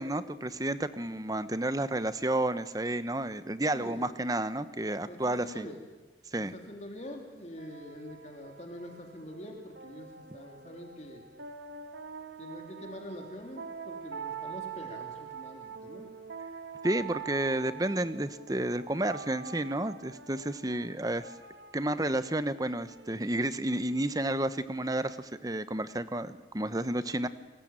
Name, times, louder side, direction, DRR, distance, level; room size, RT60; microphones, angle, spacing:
voice 1, 0.0-5.7 6.3-6.5 16.8-21.3 21.7-27.3, right 1 dB, 20° right, 12 dB, 1.0 m, -31 dB
voice 2, 3.7-4.1 5.1-5.8 6.3-11.2 12.4-16.1, left 1 dB, 40° left, 2 dB, 3.2 m, -45 dB
sound 1, 7.0-24.5, right 6 dB, 85° right, 1.8 m, -45 dB
29.5 x 21.5 x 8.9 m, 1.2 s
head